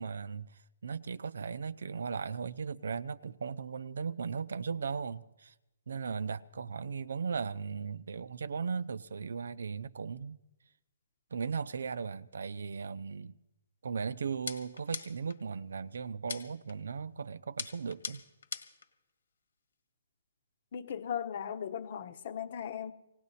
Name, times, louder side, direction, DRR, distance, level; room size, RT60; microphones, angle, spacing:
voice 1, 0.0-5.5 5.9-10.4 11.3-13.3 13.8-18.2, right 5 dB, 75° right, 0.7 m, -37 dB
sound 1, 14.5-15.4 16.3-16.7 17.6-18.9, left 5 dB, 75° left, 1.8 m, -41 dB
voice 2, 20.7-22.9, left 8 dB, 45° left, 1.1 m, -37 dB
19.0 x 18.0 x 4.2 m
hypercardioid pair, 160°, 0 cm